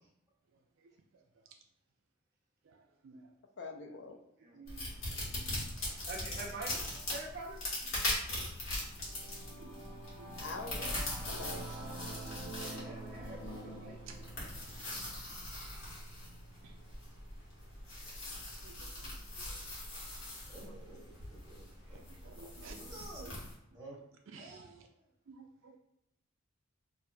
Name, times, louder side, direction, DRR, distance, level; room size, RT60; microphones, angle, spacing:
voice 1, 3.6-4.2 10.2-12.1 19.3-19.4, left 4 dB, 55° left, 4 dB, 0.4 m, -45 dB
voice 2, 4.6-4.9 5.4-5.5 5.8-6.1 8.2-8.6 9.5-9.7 10.2-10.3 12.3-12.8 18.6-19.1 19.5-19.6 22.3-22.7 25.3-25.8, right 4 dB, 65° right, 4 dB, 0.3 m, -54 dB
sound 1, 4.7-23.5, left 1 dB, 75° left, 1.4 m, -41 dB
voice 3, 6.0-7.6 12.5-14.2 21.9-22.0, right 2 dB, 45° right, -2 dB, 0.7 m, -46 dB
Singing / Musical instrument, 8.5-18.1, right 2 dB, 90° left, 1.0 m, -48 dB
voice 4, 20.5-23.3 23.7-24.0 24.4-25.0, right 2 dB, 15° right, -7 dB, 1.3 m, -52 dB
4.4 x 2.5 x 2.3 m, 0.81 s
head